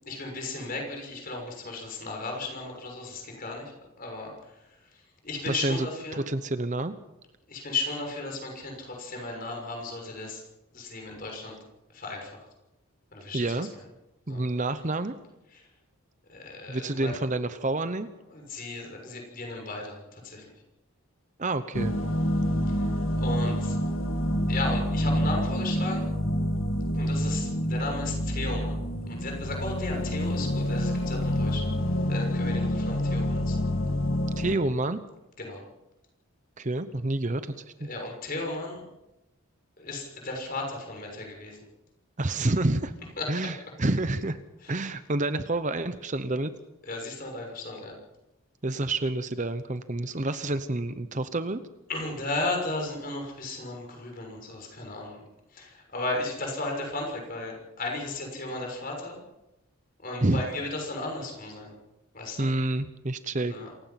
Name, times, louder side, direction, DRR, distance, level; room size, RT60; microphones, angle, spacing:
voice 1, 0.0-6.2 7.5-10.4 10.7-11.6 11.9-12.5 13.1-13.5 14.3-14.4 15.5-15.7 16.3-17.2 18.3-20.5 22.7-22.9 23.2-23.8 24.5-26.1 26.9-28.8 29.1-31.7 32.1-33.6 35.4-35.6 37.8-38.9 39.8-41.6 43.2-43.3 44.6-44.8 46.9-47.9 51.9-55.2 55.5-59.2 60.0-61.7 62.1-62.5 63.4-63.7, left 2 dB, 40° left, 1 dB, 6.3 m, -35 dB
voice 2, 5.5-5.9 6.1-6.9 13.3-13.7 14.3-15.1 16.7-18.1 21.4-22.0 34.4-35.0 36.6-37.9 42.2-42.9 43.3-44.4 44.7-46.5 48.6-51.6 60.2-60.4 62.4-63.5, right 2 dB, 35° right, 11 dB, 0.9 m, -28 dB
sound 1, 21.7-34.6, equal, 65° left, 2.0 m, -27 dB
27.5 x 16.0 x 5.9 m, 0.95 s
head